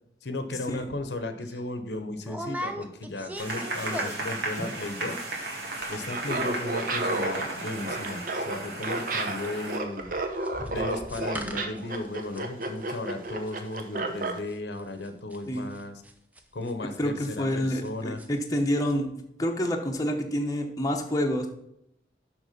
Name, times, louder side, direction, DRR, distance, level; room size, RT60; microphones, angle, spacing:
voice 1, 0.2-5.2 5.9-10.1 10.7-16.0 16.5-18.2 19.4-19.5, left 2 dB, 75° left, 9 dB, 0.9 m, -35 dB
sound 1, 0.9-1.0 1.4-1.6 2.2-4.4 4.7-5.1 5.3-5.4 5.6-6.0 6.3-8.6 8.8-17.9 18.2-18.6 18.9-19.0, equal, 10° right, 0.6 m, -40 dB
sound 2, 3.4-9.8, right 2 dB, 70° right, 1.9 m, -34 dB
Laughter, 6.0-14.4, right 2 dB, 50° right, 0.9 m, -32 dB
voice 2, 17.0-19.1 19.4-21.5, equal, 20° left, 2 dB, 0.8 m, -28 dB
6.5 x 6.1 x 5.2 m, 0.75 s
head